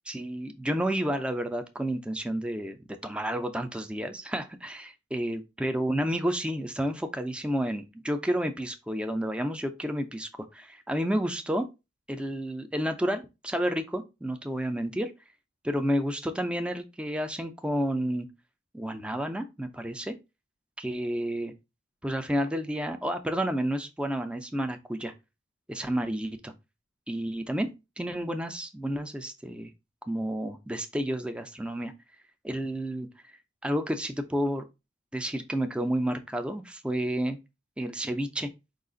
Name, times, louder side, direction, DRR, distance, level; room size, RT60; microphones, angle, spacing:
voice 1, 0.1-11.7 12.1-15.1 15.6-18.3 18.7-20.2 20.8-21.5 22.0-25.1 25.7-26.5 27.1-29.7 30.1-31.9 32.4-33.1 33.6-34.6 35.1-37.4 37.8-38.5, equal, 5° right, 0.4 m, -30 dB
4.7 x 2.4 x 3.7 m
head